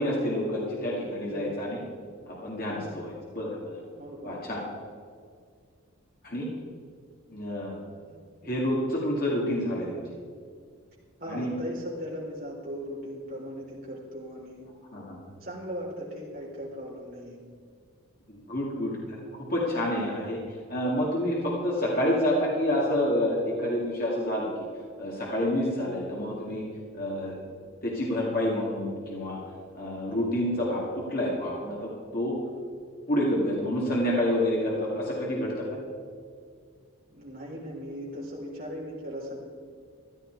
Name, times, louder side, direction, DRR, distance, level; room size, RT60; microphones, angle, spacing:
voice 1, 0.0-1.8 2.3-3.8 4.2-4.6 6.2-6.5 7.3-7.8 8.4-10.1 11.3-11.5 14.9-15.2 18.3-20.4 20.7-24.5 25.0-26.6 26.9-27.4 27.8-29.4 29.7-32.4 33.1-35.7, left 1 dB, 45° left, -4 dB, 2.2 m, -28 dB
voice 2, 1.3-1.7 2.6-3.0 4.0-4.3 8.0-8.2 8.4-8.5 11.2-14.7 15.4-17.4 18.5-18.7 37.1-39.4, equal, 40° right, -5 dB, 4.1 m, -38 dB
14.5 x 11.5 x 4.6 m, 2.1 s
head